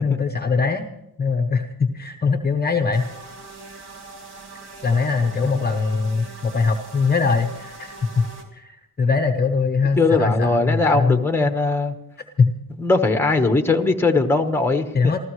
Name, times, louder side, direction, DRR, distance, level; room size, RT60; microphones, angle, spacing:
voice 1, 0.0-0.8 1.2-3.0 4.8-8.3 8.5-11.2 12.4-12.5 14.9-15.2, left 4 dB, 25° left, 5 dB, 0.9 m, -21 dB
sound 1, 2.9-8.4, right 3 dB, 45° right, 3.2 m, -41 dB
voice 2, 10.0-11.9 12.8-15.1, left 3 dB, 5° left, 7 dB, 1.2 m, -19 dB
27.0 x 14.5 x 3.2 m, 0.83 s
cardioid pair, 140°, 37 cm